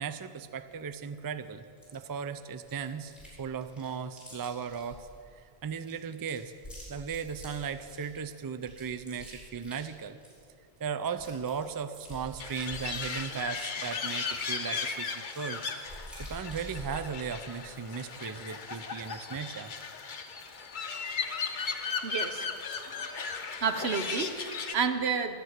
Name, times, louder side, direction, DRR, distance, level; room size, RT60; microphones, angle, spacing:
voice 1, 0.0-1.6 1.9-3.1 3.4-5.1 5.4-6.5 6.9-10.2 10.8-15.6 16.2-19.7, right 6 dB, 35° right, 11 dB, 0.3 m, -37 dB
Chewing mastication, 1.8-2.0 2.6-3.4 3.6-5.1 5.6-8.2 8.6-10.5 10.8-10.9 11.0-13.5 14.1-17.1, left 1 dB, ahead, 4.4 m, -48 dB
sound 1, 12.4-24.7, left 5 dB, 55° left, 0.9 m, -36 dB
voice 2, 22.0-22.5 23.6-25.4, right 5 dB, 85° right, 8 dB, 1.1 m, -30 dB
11.5 x 10.5 x 8.0 m, 2.4 s
omnidirectional pair, 1.0 m